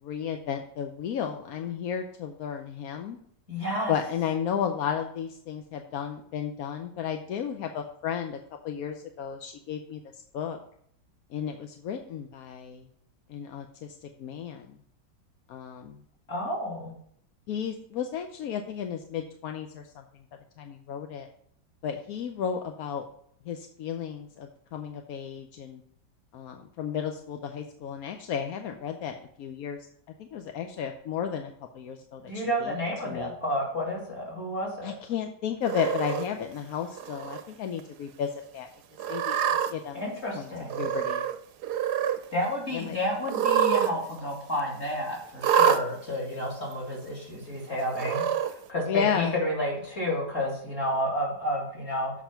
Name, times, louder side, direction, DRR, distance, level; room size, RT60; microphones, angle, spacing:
voice 1, 0.0-3.2 3.9-8.4 8.6-10.0 10.3-10.6 11.3-12.8 13.3-14.7 15.5-16.0 17.5-20.0 20.6-21.3 21.8-23.0 23.5-25.8 26.3-29.8 30.2-32.7 33.0-33.3 34.8-38.7 39.1-40.1 40.3-40.5 40.8-41.2 42.7-43.0 48.9-49.4, left 8 dB, 65° left, 5 dB, 1.0 m, -33 dB
voice 2, 3.5-3.9 16.3-16.9 32.2-34.9 39.9-40.9 42.3-52.1, left 1 dB, 35° left, -4 dB, 3.0 m, -31 dB
Cat, 35.6-36.2 37.0-37.4 37.8-37.9 39.0-39.7 40.7-41.4 41.6-42.2 43.2-43.9 44.2-44.3 45.4-45.8 46.7-46.8 47.9-48.5, right 8 dB, 70° right, 1.1 m, -25 dB
7.3 x 5.5 x 5.7 m, 0.65 s
omnidirectional pair, 2.0 m